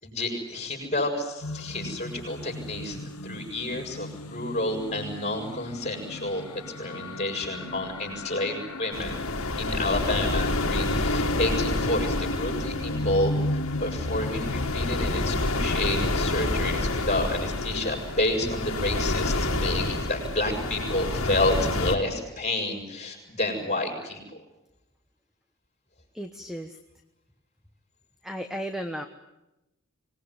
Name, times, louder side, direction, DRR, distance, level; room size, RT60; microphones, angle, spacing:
voice 1, 0.0-3.0 3.2-6.4 6.8-9.3 9.6-24.2, left 1 dB, 30° left, 3 dB, 6.5 m, -30 dB
sound 1, 1.4-17.8, left 1 dB, 90° left, 1.2 m, -35 dB
sound 2, 8.9-22.0, left 2 dB, 65° left, 2.4 m, -28 dB
voice 2, 26.1-26.7 28.2-29.0, equal, ahead, 7 dB, 1.1 m, -34 dB
25.5 x 19.5 x 9.8 m, 0.93 s
head